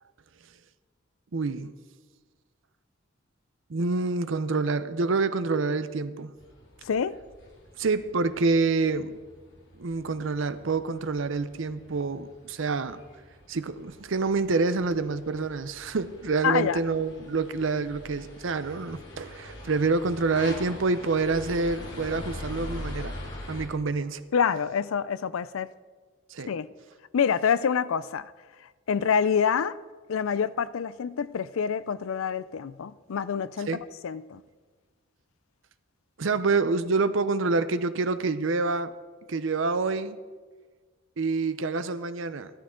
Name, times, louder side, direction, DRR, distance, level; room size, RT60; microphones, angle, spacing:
voice 1, 1.3-1.7 3.7-6.3 7.8-9.2 9.8-13.0 13.5-23.1 23.5-24.2 26.3-26.5 33.7-33.8 36.2-38.9 39.3-40.2 41.2-42.5, right 3 dB, 70° right, 0.6 m, -27 dB
sound 1, 6.4-23.7, left 1 dB, 65° left, 2.2 m, -43 dB
voice 2, 6.8-7.2 16.4-16.8 24.3-25.7 26.5-26.7 27.1-28.3 28.9-29.8 30.1-33.8 34.0-34.4, left 7 dB, 85° left, 0.4 m, -26 dB
14.5 x 12.5 x 3.8 m
head